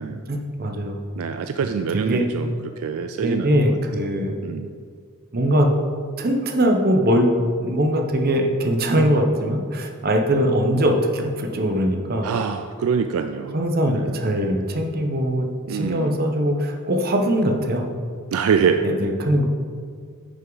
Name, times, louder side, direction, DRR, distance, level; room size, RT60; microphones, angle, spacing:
voice 1, 0.3-1.0 1.9-2.2 3.2-4.4 5.3-5.7 6.2-7.3 7.6-12.3 13.5-17.9 18.8-19.5, equal, 45° right, 3 dB, 0.8 m, -21 dB
voice 2, 1.2-3.8 4.4-4.7 12.2-13.6 13.9-14.2 15.7-16.2 18.3-18.8, right 6 dB, 70° right, 8 dB, 0.3 m, -24 dB
9.3 x 6.4 x 3.9 m, 2.1 s
head